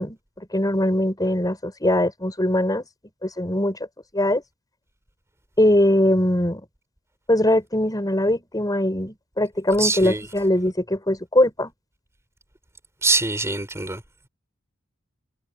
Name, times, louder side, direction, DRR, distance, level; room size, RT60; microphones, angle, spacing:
voice 1, 0.0-2.9 3.2-3.8 4.1-4.4 5.6-6.6 7.3-11.7, left 1 dB, 15° left, 5.0 m, -21 dB
voice 2, 9.8-10.3 13.0-14.0, right 3 dB, 15° right, 3.8 m, -23 dB
head